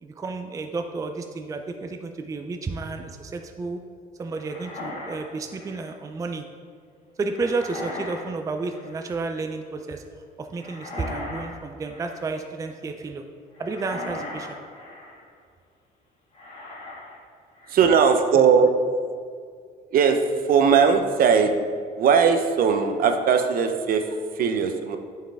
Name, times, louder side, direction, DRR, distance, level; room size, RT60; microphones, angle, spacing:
voice 1, 0.0-3.8 4.2-6.5 7.2-10.0 10.4-13.2 13.6-14.6, right 3 dB, 20° right, 5 dB, 0.4 m, -31 dB
sound 1, 4.3-6.0 7.3-8.3 8.5-9.1 10.5-11.5 11.8-12.3 13.5-15.2 16.3-17.2 17.5-17.9, left 2 dB, 40° left, 1.9 m, -38 dB
voice 2, 17.7-18.7 19.9-20.2 20.5-21.5 22.0-25.0, right 6 dB, 60° right, 7 dB, 0.7 m, -19 dB
9.1 x 4.7 x 3.5 m, 2.1 s
cardioid pair, 110°, 17 cm